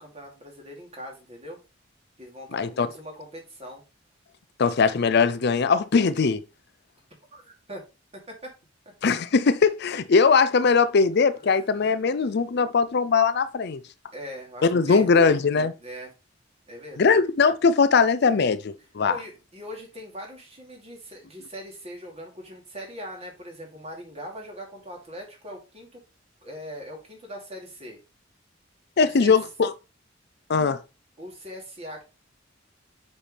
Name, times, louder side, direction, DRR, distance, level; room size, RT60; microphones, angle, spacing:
voice 1, 0.0-1.6 2.2-3.8 7.3-7.8 8.1-8.5 11.4-11.7 14.1-15.3 15.8-16.1 16.7-17.2 19.1-26.0 26.4-28.0 29.0-29.4 31.2-32.0, equal, 35° right, 2.9 m, -41 dB
voice 2, 2.5-2.9 4.6-6.4 9.0-13.8 14.6-15.7 17.0-19.2 29.0-29.7 30.5-30.8, left 5 dB, 55° left, 0.5 m, -20 dB
7.2 x 5.6 x 3.4 m
head